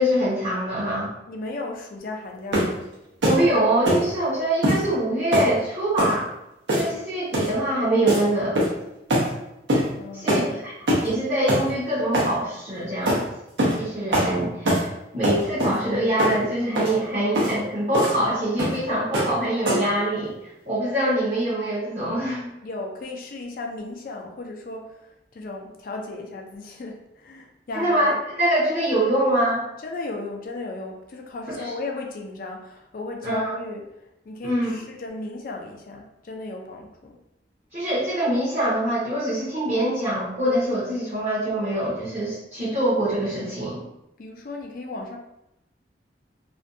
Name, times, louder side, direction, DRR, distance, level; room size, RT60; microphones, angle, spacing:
voice 1, 0.0-1.1 3.2-6.3 6.7-8.6 10.1-10.7 11.0-13.3 13.8-20.3 20.7-22.5 27.7-29.6 31.5-31.6 33.2-33.6 34.4-34.7 37.7-43.8, right 1 dB, 40° right, -10 dB, 0.7 m, -24 dB
voice 2, 1.3-2.8 10.0-10.6 22.6-28.2 29.8-37.2 44.2-45.2, left 2 dB, 50° left, 2 dB, 0.3 m, -35 dB
sound 1, 2.5-2.8 3.2-3.4 3.8-4.1 4.6-4.8 5.3-5.5 6.0-6.2 6.7-7.0 7.3-7.5 8.1-8.2 8.5-8.8 9.1-9.3 9.7-9.9 10.3-10.5 10.9-11.1 11.5-11.6 12.1-12.3 13.1-13.2 13.6-13.8 14.1-14.3 14.6-14.9 15.2-15.8 16.2-16.4 16.7-16.9 17.3-17.5 17.9-18.2 18.6-18.8 19.1-19.3 19.6-19.9, equal, 85° right, 0.8 m, -22 dB
2.5 x 2.2 x 2.5 m, 0.87 s
head